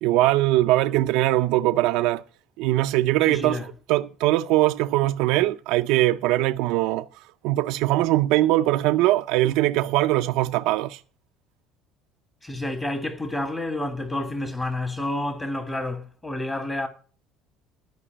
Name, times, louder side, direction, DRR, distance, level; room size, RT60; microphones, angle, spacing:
voice 1, 0.0-2.2 2.6-11.0, right 16 dB, 80° right, 0.5 m, -21 dB
voice 2, 3.2-3.7 12.4-16.9, left 1 dB, 20° left, 1.6 m, -29 dB
12.5 x 5.4 x 7.5 m
supercardioid pair, 105°, 0 cm